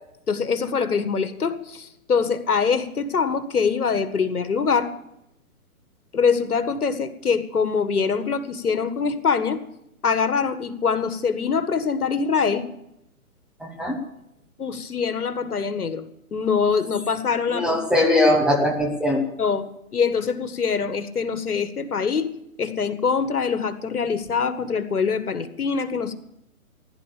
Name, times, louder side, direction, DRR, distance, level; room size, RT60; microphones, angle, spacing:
voice 1, 0.3-4.9 6.1-9.6 10.0-12.6 14.6-16.0 16.3-17.8 19.4-19.7 19.9-22.3 22.6-26.1, left 5 dB, 85° left, 10 dB, 1.8 m, -24 dB
voice 2, 13.6-14.0 17.5-19.2, left 1 dB, ahead, 0 dB, 0.9 m, -20 dB
15.5 x 11.0 x 6.6 m, 0.83 s
hypercardioid pair, 150°, 44 cm